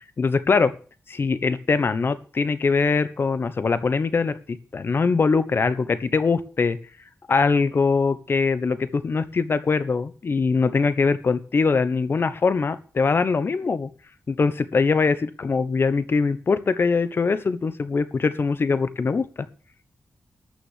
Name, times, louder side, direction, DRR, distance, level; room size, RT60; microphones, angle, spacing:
voice 1, 0.2-0.7 1.1-6.8 7.3-13.9 14.3-19.2, left 4 dB, 50° left, 13 dB, 1.1 m, -22 dB
13.0 x 6.4 x 7.4 m, 0.38 s
wide cardioid pair, 95°, 5 cm